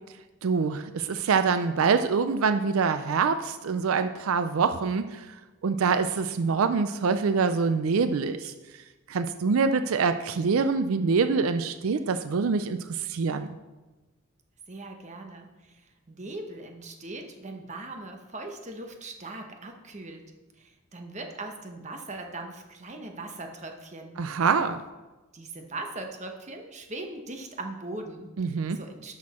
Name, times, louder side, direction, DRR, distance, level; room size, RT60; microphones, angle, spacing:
voice 1, 0.4-5.3 5.6-8.5 9.1-13.5 24.2-24.8 28.4-28.8, right 5 dB, 85° right, 10 dB, 0.4 m, -25 dB
voice 2, 14.7-15.8 16.1-20.2 20.6-24.2 25.3-28.3 28.8-29.2, right 2 dB, 35° right, 4 dB, 1.1 m, -40 dB
12.5 x 6.3 x 4.3 m, 1.2 s
head